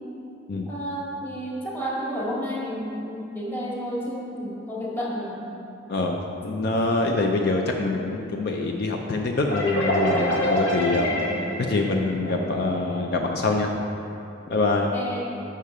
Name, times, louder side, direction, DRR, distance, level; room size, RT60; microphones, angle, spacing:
voice 1, 0.7-5.4 11.1-11.5 14.9-15.2, equal, 10° left, -5 dB, 1.2 m, -31 dB
voice 2, 5.9-11.1 11.7-13.7 14.5-14.9, left 2 dB, 55° left, 1 dB, 0.4 m, -25 dB
sound 1, 9.5-13.0, equal, 80° left, 1.2 m, -26 dB
6.8 x 5.5 x 4.8 m, 2.8 s
head